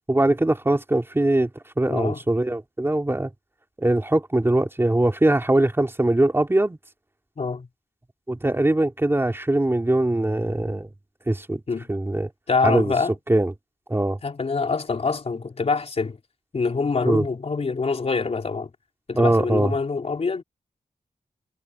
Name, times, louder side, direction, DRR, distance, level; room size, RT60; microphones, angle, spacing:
voice 1, 0.1-1.5 1.8-3.3 3.8-6.8 8.3-10.9 11.3-11.6 11.9-12.3 12.6-12.9 13.3-13.5 13.9-14.2 17.0-17.2 19.1-19.7, right 1 dB, 15° right, 3.3 m, -21 dB
voice 2, 1.9-2.2 7.4-7.7 11.7-11.9 12.5-13.1 14.2-16.2 16.5-18.7 19.1-20.4, left 4 dB, 45° left, 4.0 m, -25 dB
wide cardioid pair, 100°, 14 cm